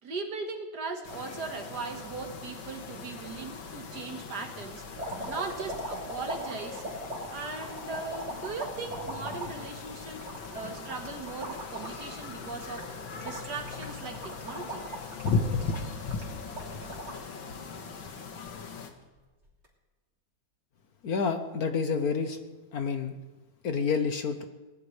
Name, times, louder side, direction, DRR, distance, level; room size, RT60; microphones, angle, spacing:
voice 1, 0.0-4.8 5.3-6.8 7.3-10.3 10.5-13.0 13.2-14.9, right 4 dB, 60° right, 4 dB, 2.1 m, -38 dB
sound 1, 1.0-18.9, left 4 dB, 85° left, 2.2 m, -38 dB
sound 2, 4.9-17.3 17.8-18.5 19.5-19.7, right 1 dB, 35° right, 3.5 m, -40 dB
voice 2, 21.0-22.4 22.7-23.1 23.6-24.4, left 5 dB, 60° left, 7 dB, 1.3 m, -29 dB
21.0 x 20.0 x 3.3 m, 1.2 s
omnidirectional pair, 2.1 m